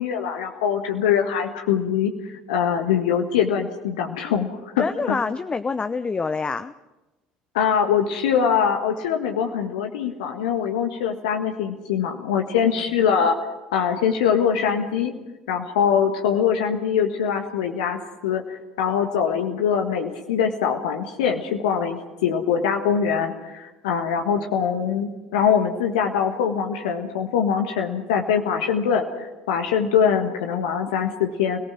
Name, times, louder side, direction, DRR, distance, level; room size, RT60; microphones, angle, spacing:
voice 1, 0.0-4.5 4.7-5.2 7.5-13.4 13.7-15.1 15.5-31.6, left 7 dB, 65° left, 4 dB, 1.6 m, -23 dB
voice 2, 4.8-6.7 12.6-12.7, left 4 dB, 20° left, 12 dB, 0.7 m, -26 dB
30.0 x 18.5 x 6.1 m, 1.1 s
figure-of-eight pair, 60°, 4 cm